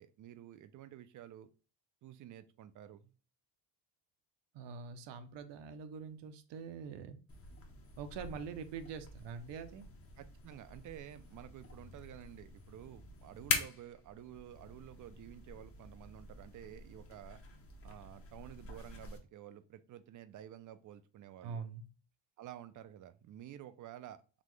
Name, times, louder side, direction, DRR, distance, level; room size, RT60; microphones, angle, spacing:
voice 1, 0.0-1.5 2.0-3.1 10.2-17.4 17.8-21.6 22.4-24.4, right 11 dB, 45° right, 12 dB, 0.4 m, -51 dB
voice 2, 4.5-7.2 8.0-9.9 21.4-21.8, right 6 dB, 65° right, 10 dB, 0.8 m, -44 dB
sound 1, 7.3-19.2, left 4 dB, 30° left, 0.8 m, -44 dB
4.2 x 3.2 x 3.1 m, 0.37 s
cardioid pair, 135°, 45 cm